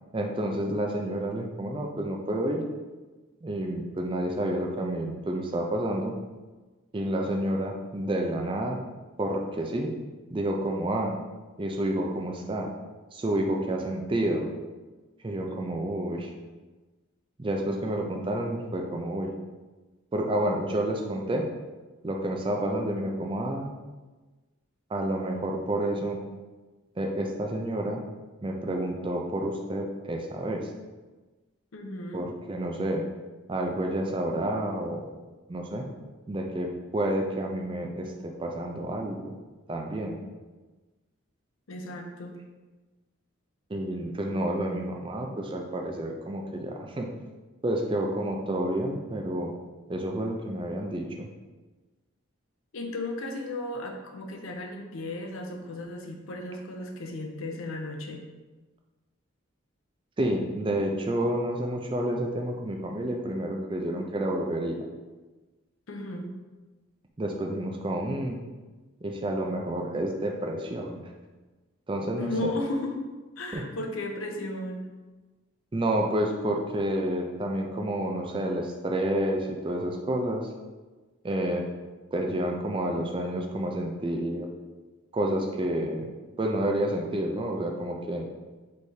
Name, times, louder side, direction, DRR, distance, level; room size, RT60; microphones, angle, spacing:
voice 1, 0.1-2.6 3.4-6.1 6.9-8.8 9.2-10.0 10.3-11.1 11.6-12.7 13.1-14.5 15.2-16.3 17.4-19.3 20.1-21.5 22.0-23.8 24.9-26.2 27.0-28.0 28.4-30.7 32.1-33.0 33.5-35.1 35.5-35.8 36.3-39.3 39.7-40.2 43.7-47.1 47.6-49.5 49.9-51.3 60.2-64.8 67.2-68.4 69.0-71.0 71.9-72.5 73.5-73.6 75.7-80.5 81.2-81.7 82.1-84.5 85.1-86.0 86.4-88.3, right 1 dB, 25° right, 1 dB, 0.4 m, -29 dB
voice 2, 31.7-32.3 41.7-42.4 52.7-58.2 65.9-66.3 72.2-73.0 73.4-74.9, left 1 dB, 75° left, 3 dB, 0.6 m, -34 dB
3.4 x 3.2 x 4.1 m, 1.2 s
head